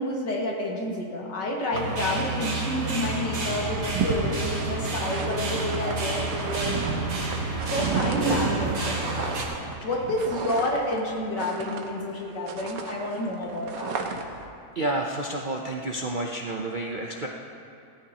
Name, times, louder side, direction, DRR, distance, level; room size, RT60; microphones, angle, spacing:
voice 1, 0.0-7.4 7.7-9.4 9.8-14.0, left 1 dB, 80° left, -2 dB, 2.5 m, -29 dB
sound 1, 1.7-9.4, right 3 dB, 70° right, 2.3 m, -30 dB
sound 2, 3.3-12.2 12.5-14.5, right 5 dB, 85° right, 1.7 m, -32 dB
voice 2, 14.7-17.3, right 2 dB, 50° right, -1 dB, 0.6 m, -30 dB
17.5 x 14.0 x 2.9 m, 2.7 s
omnidirectional pair, 1.8 m